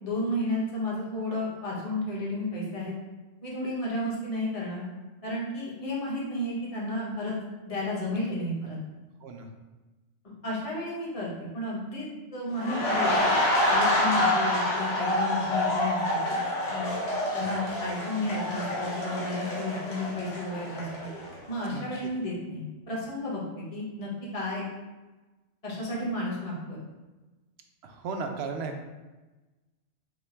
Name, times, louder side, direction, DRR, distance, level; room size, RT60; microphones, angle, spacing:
voice 1, 0.0-2.9 3.4-4.9 5.2-7.4 7.7-8.8 10.4-13.2 13.7-16.4 16.7-17.0 17.3-21.1 21.5-23.4 23.7-24.6 25.6-26.8, left 1 dB, 30° left, -5 dB, 1.1 m, -32 dB
sound 1, 12.6-21.4 21.8-22.0, left 1 dB, 60° left, 1.1 m, -27 dB
voice 2, 27.8-28.8, right 4 dB, 65° right, 4 dB, 0.7 m, -35 dB
5.8 x 2.2 x 3.3 m, 1.2 s
omnidirectional pair, 1.3 m